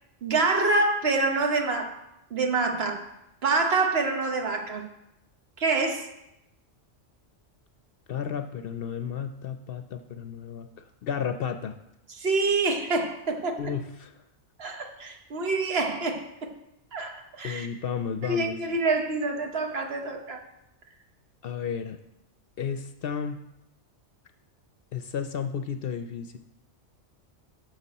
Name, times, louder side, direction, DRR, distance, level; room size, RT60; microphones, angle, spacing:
voice 1, 0.2-2.0 2.3-3.1 3.4-4.9 5.6-6.1 12.2-13.6 14.6-16.5 16.9-17.7 18.2-20.4, right 3 dB, 60° right, 4 dB, 1.2 m, -26 dB
voice 2, 8.1-11.8 13.6-14.1 17.4-18.6 21.4-22.0 22.6-23.4 24.9-26.4, left 7 dB, 60° left, 8 dB, 0.7 m, -33 dB
9.8 x 6.7 x 4.1 m, 0.86 s
omnidirectional pair, 1.2 m